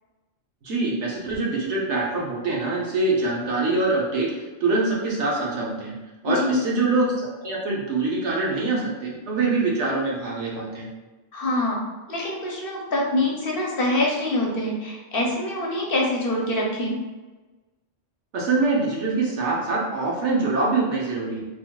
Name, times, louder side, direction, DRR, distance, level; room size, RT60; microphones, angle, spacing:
voice 1, 0.6-4.3 4.6-5.9 6.2-10.9 18.3-21.4, right 3 dB, 75° right, -3 dB, 1.2 m, -24 dB
voice 2, 6.2-6.6 11.3-11.8 12.1-17.0, left 1 dB, 55° left, -2 dB, 0.9 m, -25 dB
3.9 x 3.0 x 2.2 m, 1.2 s
omnidirectional pair, 1.2 m